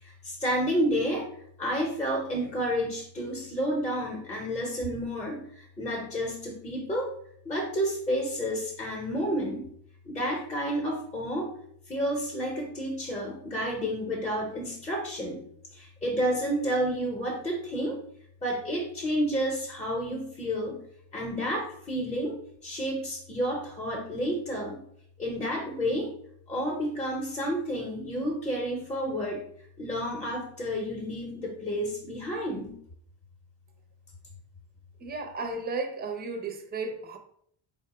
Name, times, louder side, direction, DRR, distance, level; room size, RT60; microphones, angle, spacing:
voice 1, 0.0-1.3 1.6-7.1 7.4-9.7 10.0-11.5 11.9-15.4 15.7-18.0 18.4-20.8 21.1-22.3 22.6-24.8 25.2-26.1 26.5-29.4 29.8-32.8, equal, 15° left, -1 dB, 0.8 m, -30 dB
voice 2, 35.0-37.2, right 3 dB, 20° right, 5 dB, 0.6 m, -34 dB
4.6 x 2.1 x 4.1 m, 0.67 s
cardioid pair, 125°, 48 cm